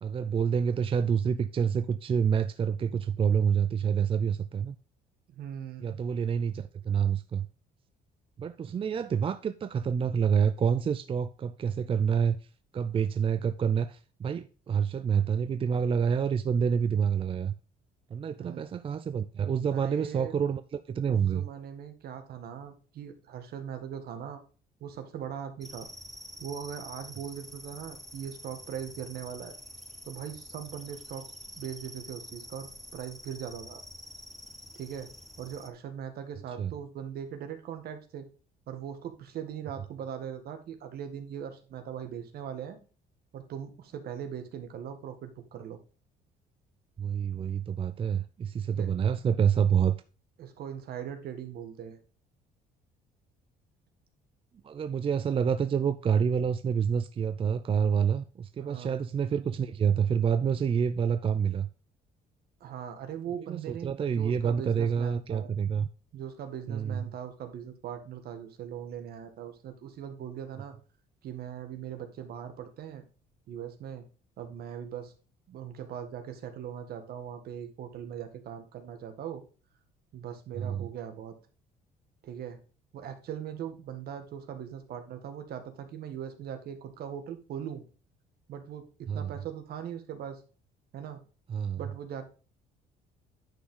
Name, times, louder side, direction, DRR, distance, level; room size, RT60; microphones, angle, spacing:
voice 1, 0.0-4.8 5.8-7.5 8.4-12.4 12.7-17.5 18.1-21.4 36.6-36.7 47.0-50.0 54.6-61.7 63.5-65.9 66.7-67.1 80.6-80.9 89.1-89.3 91.5-91.8, right 7 dB, 30° right, 0.5 m, -27 dB
voice 2, 5.3-6.0 18.4-18.7 19.7-20.4 21.1-24.4 24.8-25.9 26.4-29.6 30.0-31.3 31.5-33.8 34.7-35.1 35.4-38.3 38.7-42.8 43.3-45.8 48.7-48.9 50.4-52.0 58.6-59.0 62.6-65.5 66.1-70.7 71.2-73.0 73.5-74.0 74.4-75.1 75.5-79.4 80.1-81.3 82.2-82.6 82.9-87.8 88.5-90.4 90.9-91.2 91.8-92.2, right 9 dB, 65° right, 1.8 m, -40 dB
sound 1, 25.6-35.7, left 1 dB, ahead, 1.0 m, -47 dB
10.0 x 6.0 x 3.7 m
cardioid pair, 110°, 17 cm